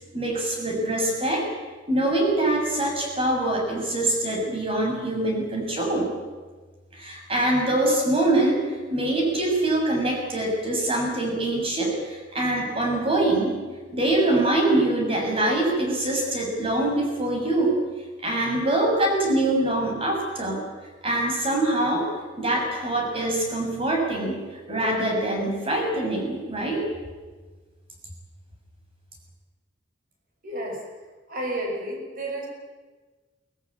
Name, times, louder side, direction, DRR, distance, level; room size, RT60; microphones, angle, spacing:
voice 1, 0.1-1.4 1.9-6.1 6.9-8.6 8.9-13.6 13.9-17.8 18.2-20.6 21.0-22.1 22.4-24.4 24.7-26.8, right 1 dB, 30° right, 1 dB, 6.6 m, -24 dB
voice 2, 30.4-30.8 31.3-32.5, right 1 dB, 50° right, 1 dB, 6.4 m, -31 dB
24.0 x 16.5 x 8.7 m, 1.3 s
head